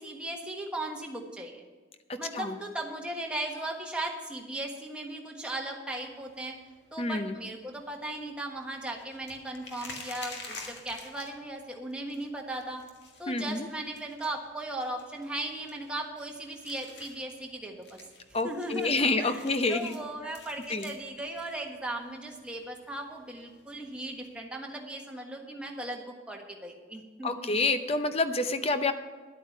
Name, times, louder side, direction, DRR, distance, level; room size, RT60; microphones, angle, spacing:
voice 1, 0.0-1.6 2.2-6.5 6.9-12.8 13.2-18.0 18.4-27.5, right 1 dB, 5° right, 0 dB, 1.4 m, -37 dB
voice 2, 2.1-2.5 7.0-7.3 13.3-13.7 18.3-20.0 20.7-20.9 27.2-28.9, left 3 dB, 30° left, 9 dB, 0.7 m, -28 dB
sound 1, 6.0-24.5, left 3 dB, 55° left, 1.9 m, -51 dB
11.0 x 8.5 x 6.1 m, 1.4 s
head